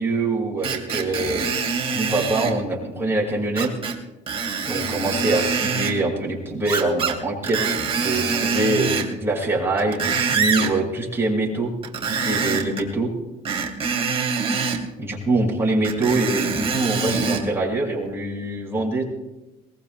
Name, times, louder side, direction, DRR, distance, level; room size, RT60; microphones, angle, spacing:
voice 1, 0.0-3.7 4.7-11.7 12.0-13.1 15.0-19.0, right 2 dB, 15° right, -3 dB, 6.3 m, -24 dB
Screech, 0.6-2.6 3.6-4.0 4.3-5.9 6.6-7.2 7.4-9.1 9.6-10.7 11.8-12.8 13.5-14.8 15.8-17.4 18.0-18.1, right 5 dB, 35° right, 2.6 m, -25 dB
22.5 x 20.5 x 2.2 m, 1.0 s
cardioid pair, 110°, 17 cm